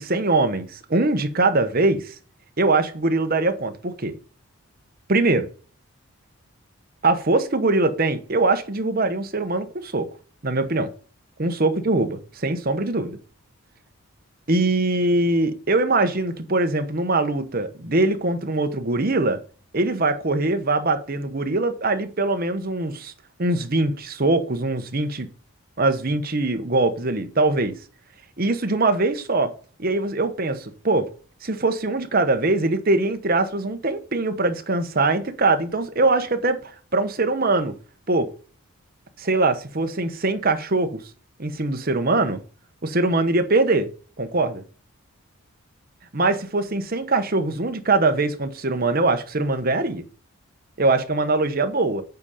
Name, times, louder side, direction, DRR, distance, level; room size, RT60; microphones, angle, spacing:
voice 1, 0.0-2.1 2.6-4.1 5.1-5.5 7.0-10.1 10.4-10.9 11.4-13.2 14.5-19.4 19.7-23.1 23.4-25.3 25.8-27.7 28.4-29.5 29.8-31.1 31.4-37.8 38.1-38.3 39.2-41.0 41.4-42.4 42.8-43.9 44.2-44.6 46.1-50.0 50.8-52.0, right 2 dB, 40° right, 1.0 m, -22 dB
8.2 x 5.0 x 5.4 m
head